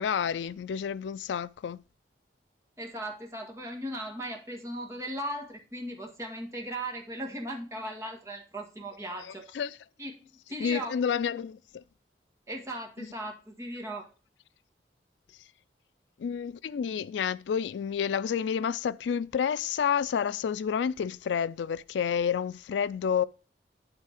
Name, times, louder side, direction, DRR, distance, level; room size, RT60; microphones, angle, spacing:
voice 1, 0.0-1.8 9.2-9.8 10.6-11.8 16.2-23.2, left 7 dB, 85° left, 0.3 m, -30 dB
voice 2, 2.8-9.4 10.0-10.1 10.5-10.9 12.5-14.1, right 1 dB, 15° right, 1.5 m, -37 dB
9.1 x 3.7 x 4.8 m
head